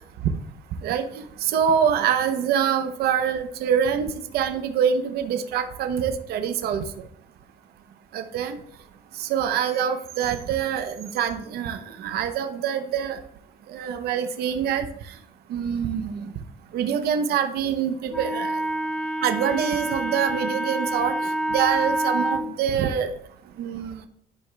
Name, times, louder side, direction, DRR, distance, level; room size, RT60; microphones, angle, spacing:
voice 1, 1.5-4.1 4.3-6.8 8.1-8.6 9.2-13.2 13.7-14.9 15.5-16.3 16.7-18.5 19.2-21.1 21.5-23.1 23.6-24.0, right 8 dB, 70° right, 7 dB, 0.7 m, -25 dB
Wind instrument woodwind instrument, 18.1-22.5, right 1 dB, 5° left, 0.9 m, -27 dB
12.0 x 4.8 x 2.3 m, 0.71 s
cardioid pair, 110°, 17 cm